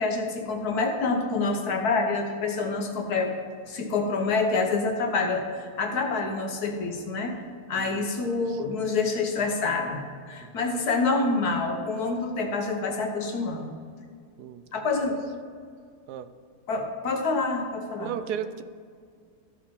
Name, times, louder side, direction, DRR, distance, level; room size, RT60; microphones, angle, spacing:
voice 1, 0.0-3.3 3.7-7.4 7.7-13.7 14.7-15.2 16.7-18.1, left 3 dB, 75° left, 3 dB, 1.6 m, -27 dB
voice 2, 7.8-8.1 8.5-8.6 10.4-10.5 14.4-14.6 16.1-16.3 18.0-18.6, right 9 dB, 85° right, 12 dB, 1.1 m, -34 dB
13.5 x 4.9 x 5.2 m, 2.1 s
omnidirectional pair, 1.7 m